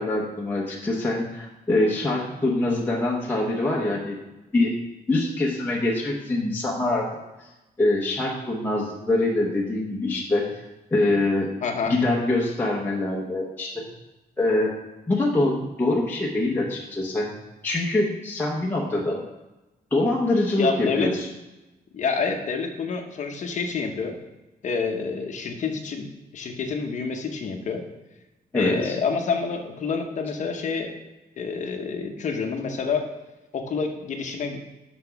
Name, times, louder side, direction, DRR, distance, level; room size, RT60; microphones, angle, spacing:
voice 1, 0.0-4.2 4.5-4.7 5.1-7.1 7.4-7.5 7.8-10.6 10.9-11.5 11.9-13.8 14.4-14.7 15.1-17.3 17.6-19.2 19.9-21.3 28.5-29.0, left 2 dB, 10° left, -4 dB, 0.8 m, -24 dB
voice 2, 11.6-11.9 20.6-21.1 21.9-24.2 24.6-26.1 26.3-27.8 28.5-30.9 31.4-33.0 33.5-34.6, left 5 dB, 50° left, 4 dB, 0.8 m, -28 dB
5.9 x 5.9 x 5.7 m, 1.0 s
wide cardioid pair, 180°, 16 cm